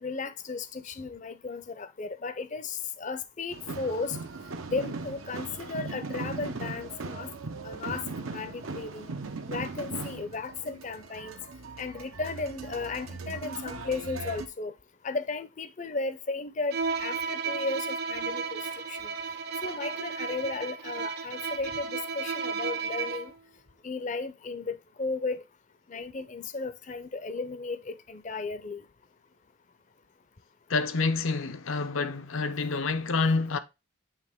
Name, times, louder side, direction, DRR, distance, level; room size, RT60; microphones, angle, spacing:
voice 1, 0.0-4.2 4.7-7.3 7.6-8.0 8.3-9.1 9.5-11.4 11.8-14.7 15.0-18.6 18.9-19.1 19.6-23.3 23.8-25.4 25.9-28.8, left 4 dB, 35° left, 0.5 m, -35 dB
sound 1, 3.5-14.5, right 3 dB, 90° right, 0.9 m, -39 dB
Bowed string instrument, 16.7-23.4, right 5 dB, 50° right, 0.7 m, -33 dB
voice 2, 30.7-33.6, left 4 dB, 80° left, 0.7 m, -27 dB
8.2 x 3.4 x 3.5 m
head